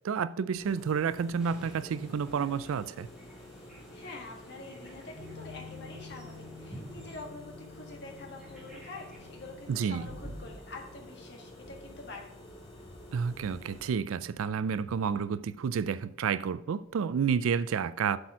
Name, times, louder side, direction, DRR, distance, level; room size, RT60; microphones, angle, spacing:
voice 1, 0.0-3.1 9.7-10.1 13.1-18.2, right 6 dB, 75° right, 0.3 m, -30 dB
sound 1, 0.5-13.9, left 1 dB, 30° left, 1.8 m, -50 dB
sound 2, 1.4-12.5, right 1 dB, 5° right, 1.4 m, -54 dB
voice 2, 3.9-12.3, left 3 dB, 55° left, 1.6 m, -46 dB
sound 3, 5.1-16.7 16.9-17.2, left 2 dB, 40° right, 2.3 m, -50 dB
7.8 x 4.3 x 6.0 m
head